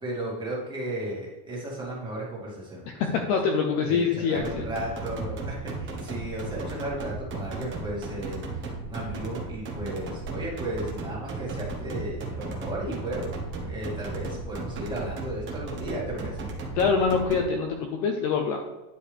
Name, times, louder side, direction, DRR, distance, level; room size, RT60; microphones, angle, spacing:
voice 1, 0.0-3.3 3.9-13.3 13.6-16.5, right 1 dB, 10° right, -5 dB, 2.1 m, -35 dB
voice 2, 2.9-4.7 16.8-18.7, left 5 dB, 35° left, 3 dB, 0.6 m, -25 dB
sound 1, 4.3-17.4, right 3 dB, 25° right, 1.3 m, -35 dB
10.0 x 4.7 x 3.4 m, 1.1 s
supercardioid pair, 165°, 45 cm